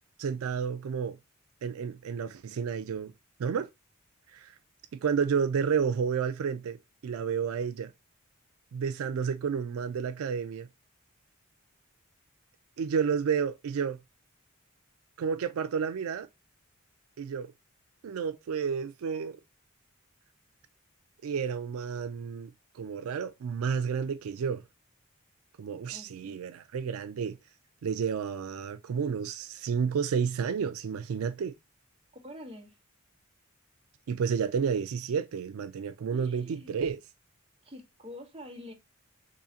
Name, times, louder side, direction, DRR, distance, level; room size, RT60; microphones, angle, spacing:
voice 1, 0.2-1.2 1.6-3.1 3.4-3.7 4.3-4.5 4.9-6.8 7.0-7.9 8.7-10.7 12.8-14.0 15.2-16.3 17.2-17.5 18.0-19.4 21.2-24.6 25.6-27.4 27.8-31.5 34.1-37.0, right 6 dB, 85° right, 0.4 m, -31 dB
voice 2, 25.9-26.4 32.1-32.8 36.1-36.7 37.6-38.7, left 1 dB, 25° right, 1.1 m, -46 dB
3.7 x 3.1 x 2.7 m
head